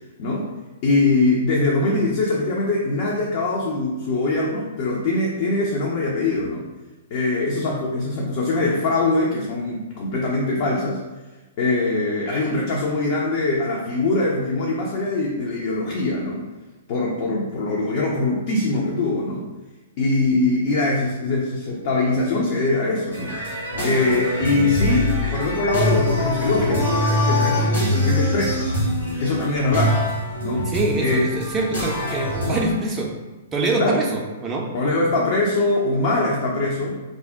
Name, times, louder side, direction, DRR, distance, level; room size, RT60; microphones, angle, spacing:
voice 1, 0.8-6.6 7.1-11.0 11.6-16.4 16.9-19.4 20.0-23.3 23.8-28.7 29.2-30.0 30.4-30.7 31.0-31.2 33.8-34.0 34.7-37.0, left 2 dB, 45° left, -3 dB, 0.4 m, -22 dB
sound 1, 23.1-32.7, left 1 dB, 80° left, 1.1 m, -23 dB
voice 2, 30.7-33.1 33.5-34.7, right 2 dB, 20° right, -2 dB, 0.4 m, -24 dB
2.6 x 2.0 x 3.4 m, 1.2 s
figure-of-eight pair, 110°, 0 cm